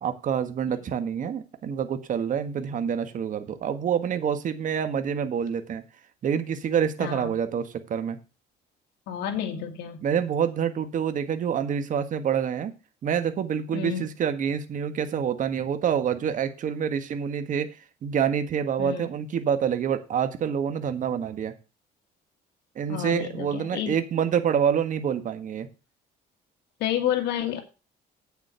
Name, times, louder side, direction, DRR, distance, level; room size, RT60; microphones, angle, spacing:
voice 1, 0.0-5.8 6.2-8.2 10.0-12.7 13.0-17.7 18.0-21.5 22.7-25.7, right 8 dB, 50° right, 9 dB, 1.5 m, -27 dB
voice 2, 7.0-7.4 9.1-10.1 13.7-14.0 18.8-19.1 22.9-23.9 26.8-27.6, left 10 dB, 85° left, 3 dB, 1.9 m, -30 dB
8.8 x 7.2 x 5.7 m, 0.30 s
cardioid pair, 110°, 17 cm